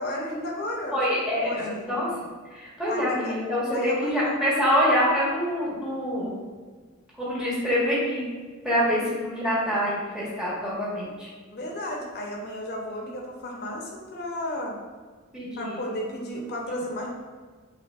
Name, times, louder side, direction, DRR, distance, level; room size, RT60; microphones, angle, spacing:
voice 1, 0.0-0.9 1.4-1.9 2.9-3.4 3.7-4.4 9.0-9.1 11.5-14.8 15.6-17.1, left 1 dB, 50° left, -1 dB, 0.8 m, -33 dB
voice 2, 0.9-2.1 2.5-6.4 7.2-8.2 8.6-11.3 15.3-15.8, equal, 5° right, -8 dB, 1.4 m, -25 dB
5.9 x 3.3 x 2.4 m, 1.5 s
head